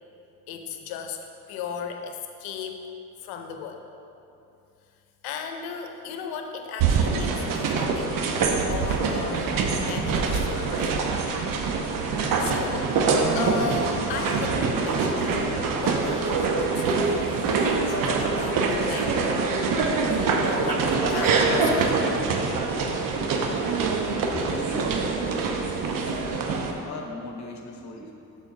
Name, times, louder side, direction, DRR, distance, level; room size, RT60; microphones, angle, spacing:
voice 1, 0.5-2.8 3.2-3.8 5.2-8.1 8.7-11.0 12.4-13.0 13.3-19.4 20.0-21.9, left 6 dB, 85° left, 5 dB, 0.7 m, -36 dB
sound 1, 6.8-26.7, right 4 dB, 70° right, 0.9 m, -24 dB
voice 2, 24.2-25.2 26.8-28.2, left 2 dB, 50° left, 2 dB, 1.2 m, -37 dB
6.9 x 4.1 x 6.3 m, 2.8 s
supercardioid pair, 70°, 35 cm